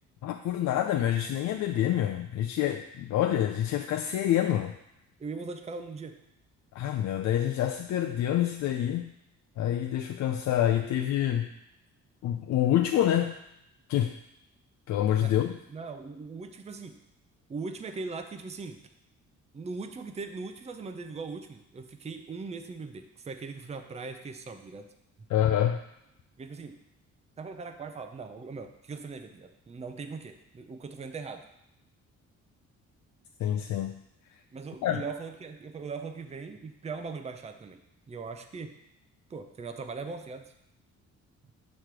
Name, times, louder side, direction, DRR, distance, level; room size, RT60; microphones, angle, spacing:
voice 1, 0.2-4.7 6.7-9.1 9.6-11.5 12.2-13.4 13.9-14.1 14.9-15.6 25.3-25.8 33.4-33.9 34.8-35.0, left 11 dB, 65° left, 4 dB, 0.5 m, -27 dB
voice 2, 5.2-6.2 15.2-15.3 15.7-17.0 17.5-18.8 19.5-24.9 26.4-26.8 27.4-31.4 34.5-37.8 38.1-38.8 39.3-40.5, right 4 dB, 20° right, 6 dB, 0.6 m, -40 dB
6.5 x 3.2 x 5.9 m, 0.80 s
cardioid pair, 90°, 30 cm